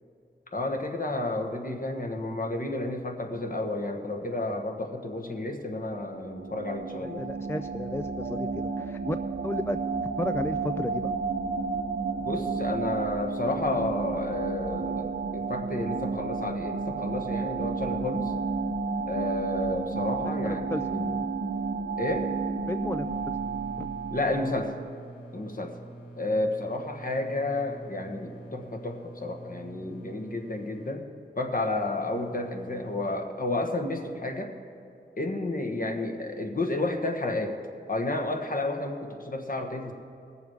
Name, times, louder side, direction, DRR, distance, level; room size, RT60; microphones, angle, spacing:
voice 1, 0.5-7.2 12.2-18.3 19.0-21.1 22.0-22.4 24.1-24.7 25.3-25.8 26.2-31.0 31.4-34.5 35.2-37.6 37.9-39.9, left 2 dB, 50° left, 3 dB, 1.4 m, -31 dB
sound 1, 6.0-24.9, right 4 dB, 60° right, 0.7 m, -32 dB
voice 2, 7.0-9.2 9.4-9.8 10.2-11.1 20.4-21.3 22.7-23.1 23.8-23.9, left 1 dB, 15° left, 9 dB, 0.3 m, -33 dB
sound 2, 23.0-33.2, right 2 dB, 30° left, 2.5 m, -46 dB
18.5 x 7.2 x 4.7 m, 2.6 s
wide cardioid pair, 70°, 19 cm